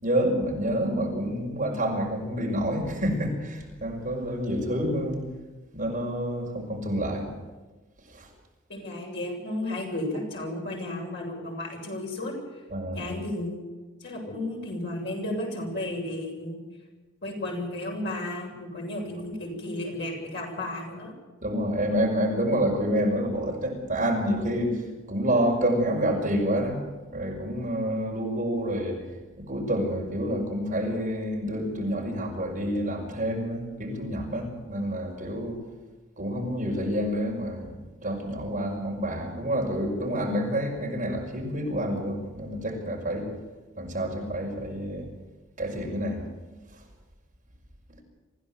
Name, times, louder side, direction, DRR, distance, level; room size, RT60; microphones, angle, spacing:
voice 1, 0.0-5.2 5.7-7.3 8.1-8.3 12.7-13.0 21.4-24.8 25.1-26.8 27.1-29.0 29.5-35.6 36.2-37.8 38.0-43.3 43.7-45.1 45.6-46.2, equal, 35° right, -1 dB, 5.8 m, -28 dB
voice 2, 8.7-12.3 12.9-13.7 14.0-16.6 17.2-21.1, left 1 dB, 50° left, -1 dB, 7.7 m, -33 dB
26.0 x 16.0 x 8.0 m, 1.3 s
head